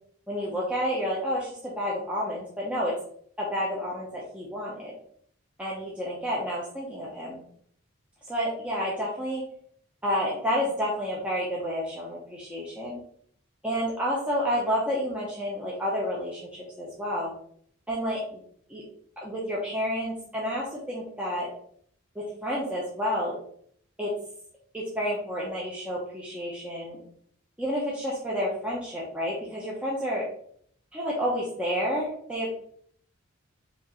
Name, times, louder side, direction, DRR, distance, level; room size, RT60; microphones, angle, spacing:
voice 1, 0.3-2.9 3.4-4.9 5.6-7.4 8.3-9.4 10.0-13.0 13.6-17.3 17.9-18.4 18.7-18.8 19.2-21.5 22.1-23.3 24.0-24.1 24.7-27.0 27.6-30.2 30.9-32.5, equal, 5° right, -6 dB, 0.7 m, -30 dB
5.0 x 2.5 x 3.0 m, 0.63 s
head